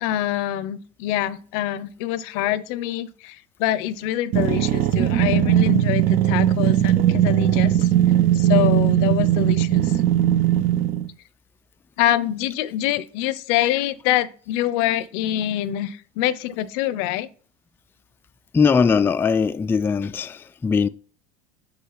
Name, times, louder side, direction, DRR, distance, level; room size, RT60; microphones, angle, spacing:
voice 1, 0.0-7.9 8.3-9.9 12.0-17.3, left 13 dB, 70° left, 0.6 m, -25 dB
sound 1, 4.3-11.1, right 12 dB, 50° right, 0.7 m, -19 dB
voice 2, 18.5-20.9, left 5 dB, 10° left, 0.3 m, -20 dB
6.2 x 5.6 x 4.0 m
supercardioid pair, 105°, 18 cm